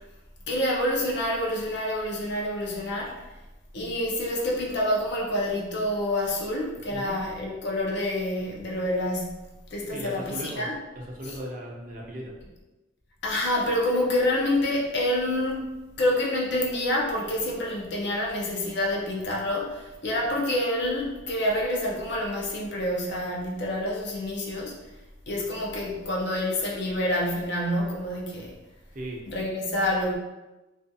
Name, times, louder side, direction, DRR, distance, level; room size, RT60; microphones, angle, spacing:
voice 1, 0.5-3.2 3.7-10.7 13.2-15.7 16.0-24.8 25.3-28.5 29.3-30.2, left 1 dB, 55° left, -2 dB, 0.5 m, -27 dB
voice 2, 9.9-10.7 11.1-12.3 28.9-29.2, equal, 40° right, -2 dB, 0.5 m, -37 dB
2.4 x 2.3 x 2.6 m, 1.1 s
head